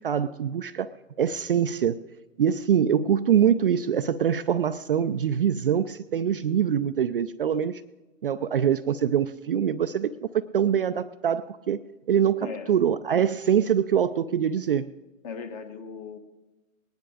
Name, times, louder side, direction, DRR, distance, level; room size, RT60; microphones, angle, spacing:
voice 1, 0.0-2.0 2.4-7.8 8.2-11.8 12.1-14.9, right 8 dB, 45° right, 10 dB, 0.4 m, -24 dB
voice 2, 12.4-12.7 15.2-16.2, left 5 dB, 30° left, 7 dB, 1.2 m, -37 dB
19.5 x 10.5 x 4.9 m, 1.1 s
hypercardioid pair, 150°, 40 cm